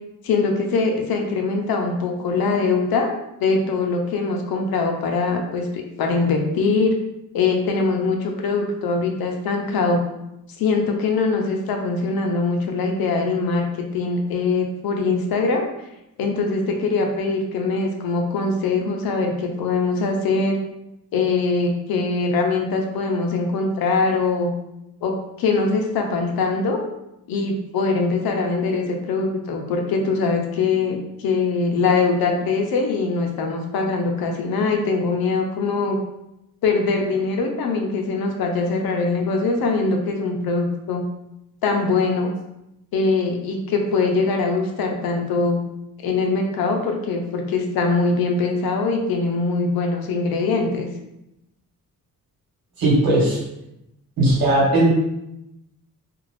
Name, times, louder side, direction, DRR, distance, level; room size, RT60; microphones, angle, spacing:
voice 1, 0.2-3.1 3.4-6.9 7.3-10.0 10.6-15.6 16.2-20.6 21.1-24.5 25.0-26.8 27.3-36.0 36.6-41.0 41.6-42.3 42.9-45.6 46.0-50.9, left 3 dB, 80° left, 3 dB, 0.6 m, -22 dB
voice 2, 52.8-53.4 54.2-54.9, right 1 dB, 75° right, -5 dB, 1.4 m, -17 dB
2.5 x 2.4 x 3.2 m, 0.87 s
cardioid pair, 100°, 36 cm